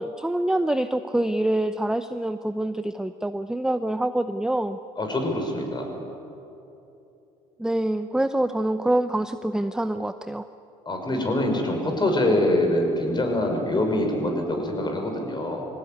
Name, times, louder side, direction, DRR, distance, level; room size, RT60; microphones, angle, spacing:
voice 1, 0.0-4.8 7.6-10.5, right 1 dB, 5° right, 10 dB, 0.7 m, -25 dB
voice 2, 5.0-5.9 10.8-15.7, left 1 dB, 25° left, 3 dB, 5.9 m, -24 dB
21.5 x 17.5 x 9.5 m, 2.9 s
supercardioid pair, 75°, 17 cm